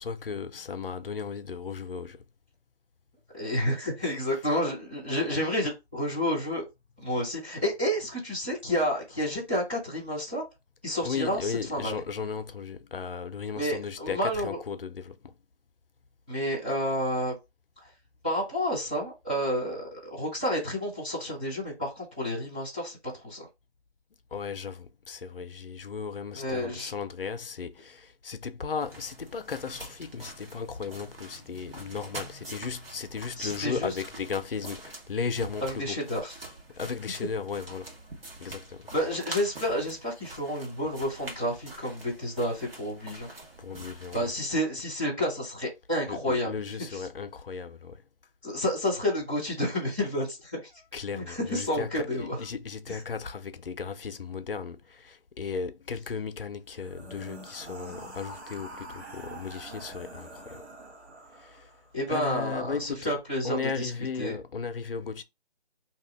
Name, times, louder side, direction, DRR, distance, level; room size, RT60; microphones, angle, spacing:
voice 1, 0.0-2.2 11.0-15.4 24.3-36.0 36.7-38.0 38.4-38.9 43.6-44.3 46.1-48.0 50.9-60.6 61.3-61.7 62.1-63.1 63.4-65.2, left 5 dB, 60° left, 0.6 m, -36 dB
voice 2, 3.3-6.6 7.0-10.4 10.8-12.0 13.6-14.6 16.3-17.3 18.2-23.0 23.2-23.5 26.3-26.9 32.5-32.6 33.4-33.9 35.6-36.3 38.9-43.3 44.1-46.5 46.9-47.0 48.4-50.7 51.1-52.4 52.9-53.0 61.9-63.9 64.2-64.4, equal, 10° right, 0.7 m, -30 dB
sound 1, 28.8-44.4, right 2 dB, 60° right, 1.4 m, -45 dB
sound 2, 56.7-61.9, right 2 dB, 85° right, 1.4 m, -45 dB
2.8 x 2.5 x 3.3 m
figure-of-eight pair, 170°, 32 cm